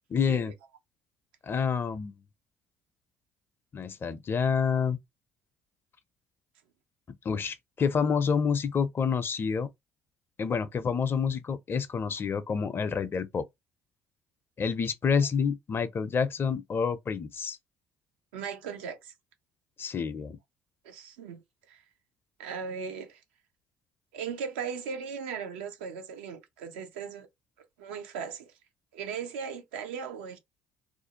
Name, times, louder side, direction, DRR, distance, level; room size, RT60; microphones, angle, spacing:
voice 1, 0.1-0.5 1.4-2.1 3.7-5.0 7.2-9.7 10.4-13.5 14.6-17.6 19.8-20.4, left 6 dB, 35° left, 0.5 m, -28 dB
voice 2, 18.3-19.1 20.8-21.4 21.7-21.8 22.4-23.2 24.1-27.3 27.8-28.5 28.9-30.4, right 6 dB, 90° right, 0.5 m, -38 dB
2.5 x 2.1 x 2.7 m
supercardioid pair, 70°, 6 cm